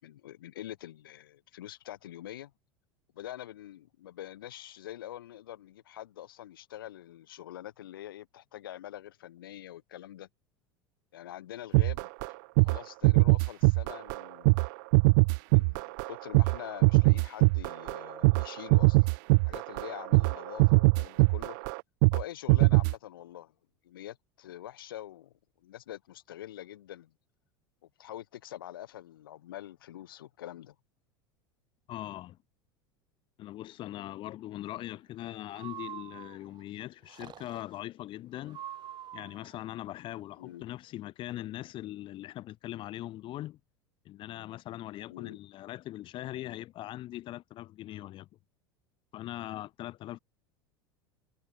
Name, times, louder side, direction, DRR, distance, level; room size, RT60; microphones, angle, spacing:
voice 1, 0.0-2.5 3.1-10.3 11.1-12.4 12.6-14.6 15.5-19.1 19.4-21.7 22.1-23.5 23.8-25.3 25.6-27.1 27.8-30.7 40.4-40.7 45.1-45.4, left 13 dB, 70° left, 7.7 m, -45 dB
sound 1, 11.7-12.3 12.6-12.8 13.0-14.2 14.4-22.2 22.5-22.9, right 30 dB, 55° right, 0.8 m, -22 dB
voice 2, 31.9-32.4 33.4-38.6 39.1-43.6 44.1-48.3 49.1-50.2, left 15 dB, 45° left, 3.8 m, -41 dB
Breathing, 35.5-36.6 37.1-37.8 38.5-39.5, right 11 dB, 35° right, 5.7 m, -45 dB
figure-of-eight pair, 75°, 12 cm